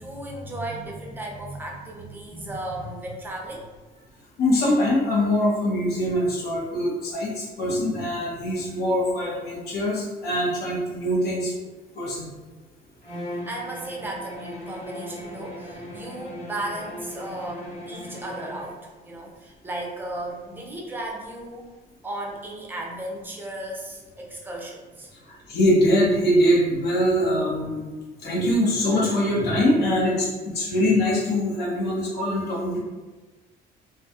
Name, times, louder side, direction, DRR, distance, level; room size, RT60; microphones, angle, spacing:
voice 1, 0.0-3.6 13.5-21.7 22.0-25.1, right 1 dB, 10° right, -1 dB, 0.5 m, -35 dB
voice 2, 4.4-11.5 11.9-12.3 25.3-27.9 28.2-32.8, left 1 dB, 70° left, -4 dB, 0.9 m, -23 dB
Bowed string instrument, 13.0-18.8, equal, 35° left, 0.8 m, -38 dB
2.3 x 2.2 x 2.7 m, 1.3 s
cardioid pair, 110°, 17 cm